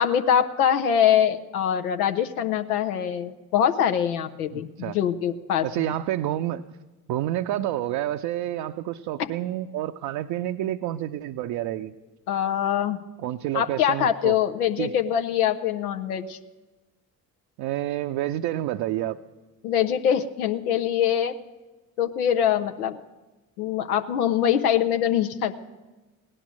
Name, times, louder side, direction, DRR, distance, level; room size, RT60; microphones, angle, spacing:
voice 1, 0.0-5.9 12.3-13.0 13.5-16.4 19.6-21.3 22.0-23.0 23.6-25.6, left 9 dB, 90° left, 7 dB, 0.6 m, -23 dB
voice 2, 4.5-5.0 5.6-6.6 7.1-11.9 13.2-14.4 14.8-14.9 17.6-19.2, right 13 dB, 60° right, 6 dB, 0.6 m, -29 dB
16.5 x 11.0 x 6.1 m, 1.2 s
hypercardioid pair, 50°, 43 cm